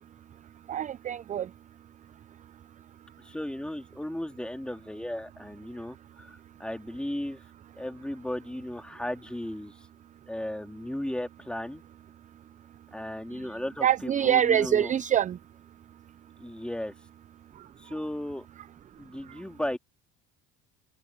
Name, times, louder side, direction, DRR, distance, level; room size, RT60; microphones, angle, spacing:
voice 1, 0.7-1.5 13.3-13.5 13.8-15.4 17.5-17.7 19.2-19.4, right 10 dB, 25° right, 0.4 m, -25 dB
voice 2, 3.2-7.4 7.8-9.7 10.3-11.8 12.9-14.9 16.4-16.9 17.8-18.5 19.0-19.8, left 1 dB, 5° left, 2.3 m, -35 dB
open air
cardioid pair, 125°, 31 cm